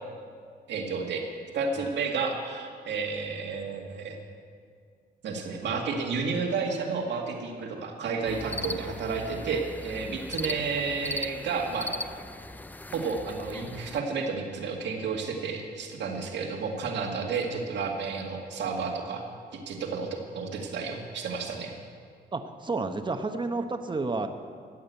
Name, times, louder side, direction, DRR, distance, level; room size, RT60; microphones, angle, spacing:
voice 1, 0.7-1.2 1.5-4.2 5.2-11.9 12.9-19.2 19.5-21.7, right 4 dB, 90° right, 1 dB, 2.0 m, -31 dB
sound 1, 8.3-14.0, left 1 dB, 10° left, 0.4 m, -38 dB
voice 2, 22.3-24.3, right 3 dB, 25° right, 6 dB, 1.0 m, -31 dB
14.0 x 8.8 x 8.1 m, 2.1 s
cardioid pair, 95°, 18 cm